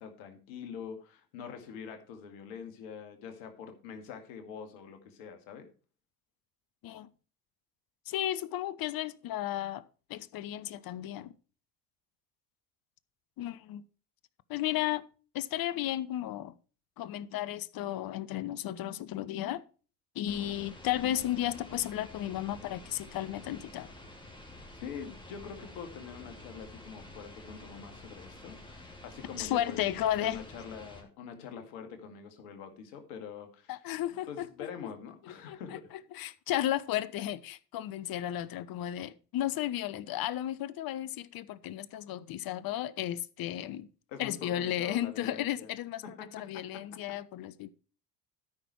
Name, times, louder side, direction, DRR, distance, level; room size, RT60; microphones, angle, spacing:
voice 1, 0.0-5.7 24.8-33.7 34.3-35.9 44.1-45.7 46.0-46.8, left 6 dB, 70° left, 2.1 m, -44 dB
voice 2, 8.1-9.8 10.1-11.3 13.4-13.8 14.5-15.0 15.3-16.5 17.0-19.6 20.1-23.9 29.4-30.4 33.7-34.5 35.5-35.8 36.1-43.9 44.2-47.7, left 13 dB, 50° left, 0.9 m, -34 dB
sound 1, 20.3-31.0, left 1 dB, 10° left, 3.3 m, -50 dB
13.0 x 6.0 x 4.6 m
hypercardioid pair, 60°, 45 cm